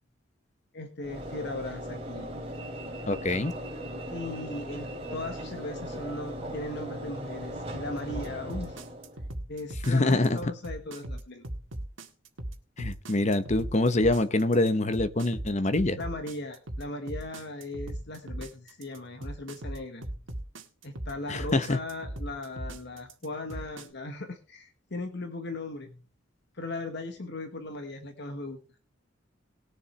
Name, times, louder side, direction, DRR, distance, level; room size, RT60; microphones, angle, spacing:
voice 1, 0.7-2.3 4.1-8.8 9.5-11.4 16.0-20.0 20.8-26.0 26.5-28.6, left 2 dB, 55° left, 1.3 m, -38 dB
Train / Engine / Alarm, 1.0-9.3, equal, 30° right, 3.1 m, -38 dB
voice 2, 3.1-3.5 9.8-10.5 12.8-16.0 21.3-21.8, left 2 dB, 35° left, 1.0 m, -25 dB
sound 1, 8.1-23.9, right 1 dB, 65° right, 1.8 m, -38 dB
20.0 x 7.2 x 3.4 m
head